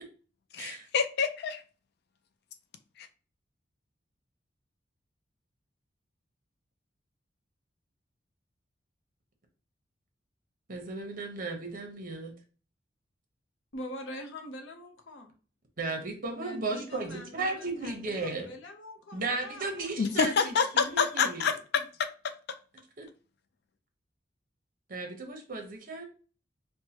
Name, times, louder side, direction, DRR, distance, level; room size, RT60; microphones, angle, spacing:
voice 1, 0.5-1.6 3.0-3.1 20.0-22.3, left 6 dB, 60° left, 0.4 m, -28 dB
voice 2, 10.7-12.3 15.8-18.5 19.1-21.4 23.0-23.1 24.9-26.1, right 3 dB, 50° right, 0.9 m, -35 dB
voice 3, 13.7-15.3 16.4-19.7, left 1 dB, 90° left, 0.7 m, -44 dB
4.5 x 2.2 x 2.8 m
head